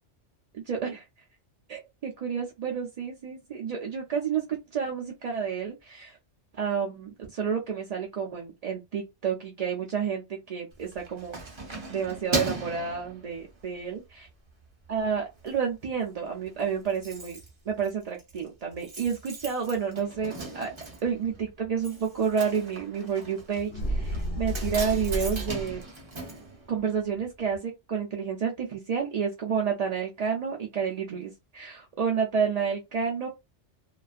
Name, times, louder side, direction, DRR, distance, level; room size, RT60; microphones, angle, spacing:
voice 1, 0.5-1.0 1.7-6.2 6.5-11.4 11.9-14.0 14.9-17.4 17.7-20.7 21.0-25.8 26.7-33.3, right 7 dB, 75° right, 0.3 m, -30 dB
Keys jangling, 10.7-13.8 14.3-14.5 14.8-15.5 15.8-15.9 16.1-16.2 16.4-27.3 27.5-27.6, right 2 dB, 30° right, 0.6 m, -38 dB
sound 1, 23.7-25.9, equal, 60° left, 1.0 m, -31 dB
2.3 x 2.3 x 2.4 m
omnidirectional pair, 1.2 m